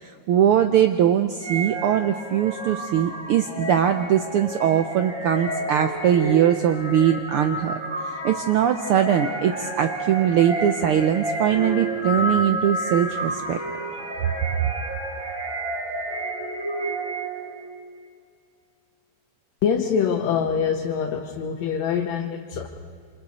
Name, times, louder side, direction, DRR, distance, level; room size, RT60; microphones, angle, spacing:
voice 1, 0.0-7.8 8.1-13.6, right 9 dB, 85° right, 7 dB, 1.2 m, -21 dB
sound 1, 1.4-17.6, right 2 dB, 25° right, 4.4 m, -30 dB
voice 2, 19.6-22.7, left 7 dB, 70° left, 2 dB, 2.3 m, -24 dB
27.5 x 27.0 x 4.2 m, 2.3 s
omnidirectional pair, 3.4 m